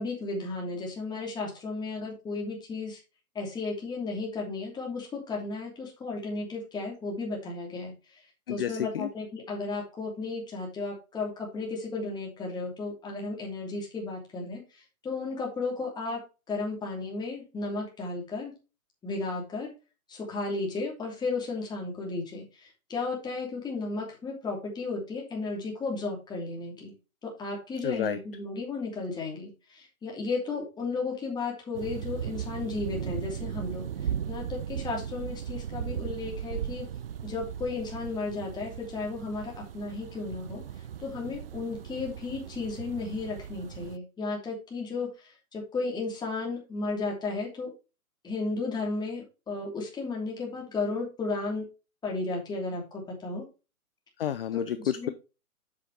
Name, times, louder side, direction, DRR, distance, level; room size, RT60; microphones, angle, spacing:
voice 1, 0.0-3.0 3.3-8.2 8.5-16.2 16.5-18.5 19.0-19.7 20.1-26.9 27.2-36.9 37.2-40.6 41.0-47.7 48.2-51.7 52.0-53.4 54.5-54.6 54.9-55.1, left 3 dB, 10° left, -1 dB, 2.8 m, -34 dB
voice 2, 8.5-9.1 27.8-28.2 54.2-55.1, left 10 dB, 40° left, 12 dB, 0.6 m, -30 dB
sound 1, 31.7-44.0, right 9 dB, 45° right, 0.4 m, -37 dB
7.9 x 7.5 x 3.2 m, 0.31 s
hypercardioid pair, 140°, 44 cm